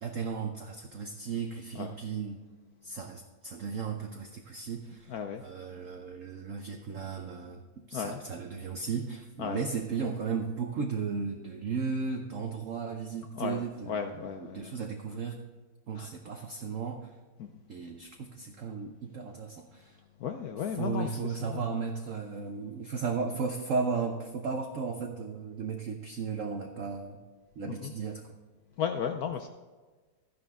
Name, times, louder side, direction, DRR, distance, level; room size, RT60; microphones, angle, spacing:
voice 1, 0.0-2.4 2.8-5.1 5.4-7.6 7.9-15.5 15.9-17.1 17.7-20.0 20.7-27.2 27.6-28.4, right 5 dB, 55° right, 4 dB, 0.9 m, -35 dB
voice 2, 5.1-5.4 7.9-8.2 9.4-9.6 13.3-14.7 16.0-16.1 17.4-17.5 20.2-21.7 27.7-27.9 28.8-29.5, left 7 dB, 70° left, 6 dB, 0.9 m, -35 dB
12.5 x 10.0 x 3.6 m, 1.3 s
omnidirectional pair, 2.0 m